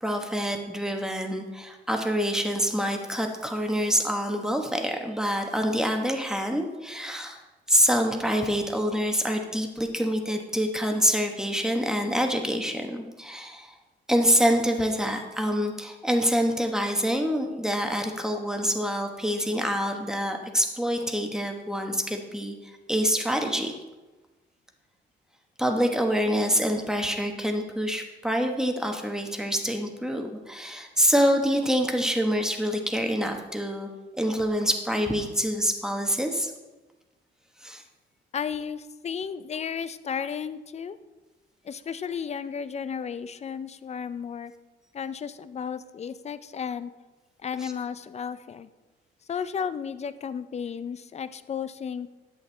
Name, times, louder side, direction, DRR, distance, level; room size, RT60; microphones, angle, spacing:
voice 1, 0.0-7.4 7.7-13.7 14.1-23.7 25.6-33.9 34.2-36.5 37.6-37.8 47.6-47.7, equal, 5° right, 3 dB, 1.1 m, -26 dB
voice 2, 38.3-41.0 41.6-44.5 44.9-46.9 47.4-48.7 49.3-52.1, left 7 dB, 35° left, 14 dB, 0.5 m, -33 dB
10.5 x 8.0 x 3.3 m, 1.2 s
cardioid pair, 90°, 20 cm